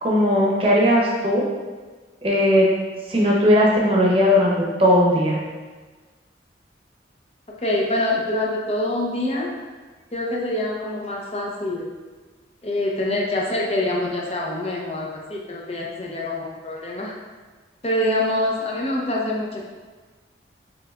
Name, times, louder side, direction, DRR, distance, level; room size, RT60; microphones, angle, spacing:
voice 1, 0.0-1.4 2.2-2.7 3.1-4.5 4.8-5.4, equal, 30° right, -4 dB, 0.9 m, -17 dB
voice 2, 7.6-9.5 10.1-11.9 12.6-17.2 17.8-19.8, left 1 dB, 35° left, -2 dB, 0.7 m, -25 dB
6.4 x 3.3 x 2.5 m, 1.4 s
head